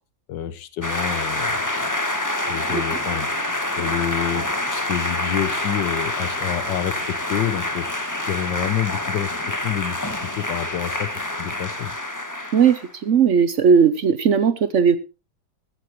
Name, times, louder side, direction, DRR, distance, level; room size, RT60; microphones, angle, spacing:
voice 1, 0.3-1.6 2.4-3.3 3.7-7.9 8.3-11.1 11.4-11.9, left 10 dB, 90° left, 14 dB, 1.6 m, -28 dB
sound 1, 0.8-12.9, left 1 dB, 10° left, 1.2 m, -27 dB
voice 2, 12.5-15.0, right 6 dB, 55° right, 13 dB, 0.9 m, -17 dB
14.5 x 13.5 x 3.1 m, 0.29 s
omnidirectional pair, 1.9 m